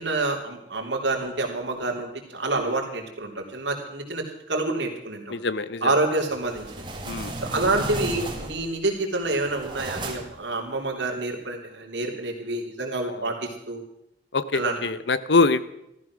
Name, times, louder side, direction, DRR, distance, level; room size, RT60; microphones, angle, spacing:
voice 1, 0.0-5.4 5.8-6.9 7.4-13.8 14.5-14.9, right 2 dB, 90° right, 1 dB, 3.4 m, -28 dB
voice 2, 5.3-5.8 7.1-7.3 14.3-15.7, left 3 dB, 80° left, 15 dB, 0.8 m, -23 dB
sound 1, 6.3-8.8 9.2-10.5, right 2 dB, 25° right, 2.0 m, -34 dB
15.0 x 14.0 x 6.1 m, 0.82 s
head